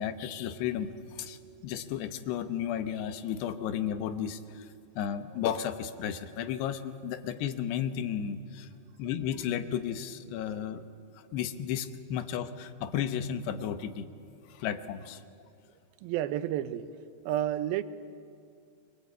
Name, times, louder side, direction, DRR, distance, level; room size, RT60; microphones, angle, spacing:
voice 1, 0.0-4.7 5.0-8.7 9.0-10.8 11.3-14.1 14.5-15.2, left 9 dB, 85° left, 3.2 m, -33 dB
voice 2, 16.0-16.9 17.3-17.8, right 12 dB, 75° right, 2.5 m, -30 dB
28.5 x 23.0 x 8.3 m
omnidirectional pair, 4.7 m